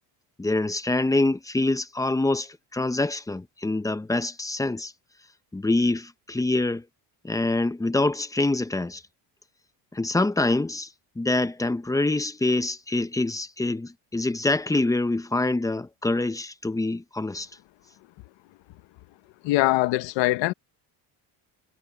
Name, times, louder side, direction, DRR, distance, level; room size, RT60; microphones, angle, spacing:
voice 1, 0.4-4.9 5.5-6.8 7.2-9.0 9.9-10.9 11.2-17.5, left 2 dB, 10° left, 0.8 m, -25 dB
voice 2, 19.4-20.5, left 18 dB, 85° left, 1.0 m, -22 dB
cardioid pair, 130°, 43 cm